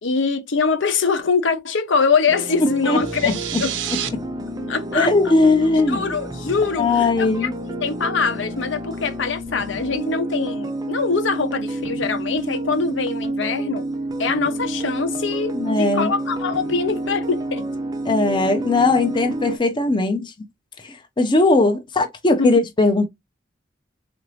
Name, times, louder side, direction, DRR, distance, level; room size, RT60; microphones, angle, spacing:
voice 1, 0.0-3.3 3.6-3.7 4.7-5.1 5.9-7.5 7.8-13.8 14.2-17.7 22.4-22.6, left 5 dB, 70° left, 0.7 m, -23 dB
sound 1, 2.3-19.6, right 1 dB, 20° right, 0.5 m, -29 dB
voice 2, 2.8-3.3 4.1-4.2 4.9-6.0 6.8-7.5 15.5-16.1 18.1-20.3 21.2-23.1, left 3 dB, 25° left, 0.6 m, -19 dB
sound 2, 2.9-4.1, right 10 dB, 75° right, 0.7 m, -29 dB
3.9 x 2.6 x 3.0 m
head